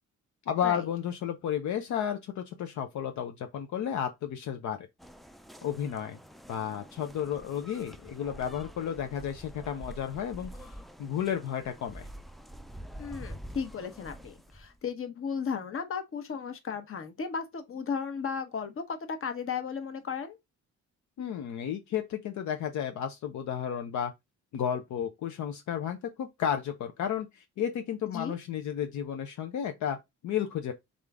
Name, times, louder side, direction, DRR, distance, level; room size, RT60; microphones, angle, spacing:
voice 1, 0.5-4.8 5.6-6.2 6.5-10.7 11.0-12.1 21.2-24.1 24.5-30.7, left 9 dB, 70° left, 0.7 m, -32 dB
sound 1, 5.0-14.9, equal, ahead, 0.4 m, -47 dB
voice 2, 13.0-20.4 28.0-28.3, left 6 dB, 45° left, 1.1 m, -35 dB
3.8 x 3.6 x 3.4 m
cardioid pair, 90°, 30 cm